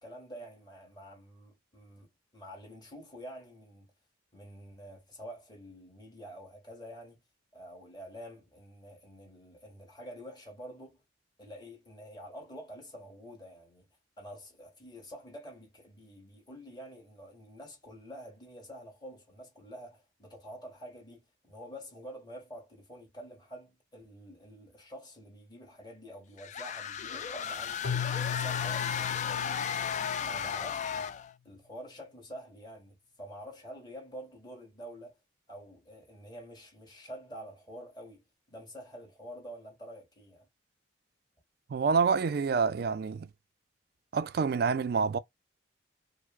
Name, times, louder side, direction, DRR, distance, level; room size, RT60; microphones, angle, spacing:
voice 1, 0.0-2.1 2.3-3.9 4.3-7.2 7.5-11.0 11.4-13.9 14.2-29.7 30.2-31.1 31.4-35.1 35.5-40.5, equal, 20° left, 1.6 m, -48 dB
sound 1, 26.4-31.3, left 8 dB, 40° left, 0.3 m, -34 dB
Keyboard (musical), 27.8-30.8, left 7 dB, 65° left, 0.9 m, -37 dB
voice 2, 41.7-43.3 44.1-45.2, right 5 dB, 55° right, 0.3 m, -27 dB
4.5 x 2.0 x 2.4 m
head